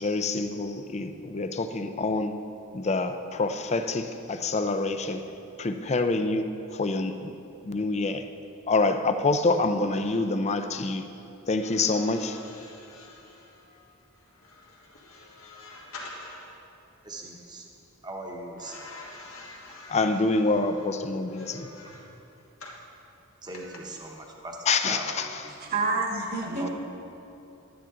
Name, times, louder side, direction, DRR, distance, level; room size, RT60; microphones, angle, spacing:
voice 1, 0.0-2.3 2.7-5.2 5.6-7.4 7.6-8.2 8.7-11.0 11.5-12.4 19.9-21.7 24.7-25.3, left 3 dB, 30° left, 8 dB, 0.5 m, -26 dB
sound 1, 11.5-16.6 18.6-22.9 23.5-23.8, left 2 dB, 70° left, 1.6 m, -47 dB
voice 2, 17.0-17.7 18.0-18.9 21.9-22.0 23.4-25.6 26.4-26.7, right 1 dB, 20° right, 0 dB, 1.1 m, -40 dB
voice 3, 25.5-26.7, right 3 dB, 45° right, 0 dB, 1.4 m, -28 dB
11.5 x 10.0 x 3.8 m, 2.9 s
head